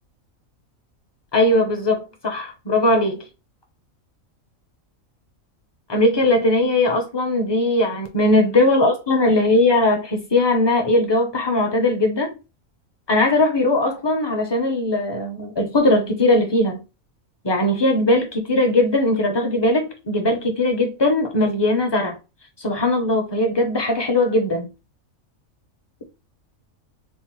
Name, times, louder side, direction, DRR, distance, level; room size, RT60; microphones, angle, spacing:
voice 1, 1.3-3.3 5.9-12.4 13.1-16.8 17.4-22.2 22.6-24.7, left 1 dB, 30° left, 0.5 m, -19 dB
4.3 x 2.0 x 3.0 m
omnidirectional pair, 1.4 m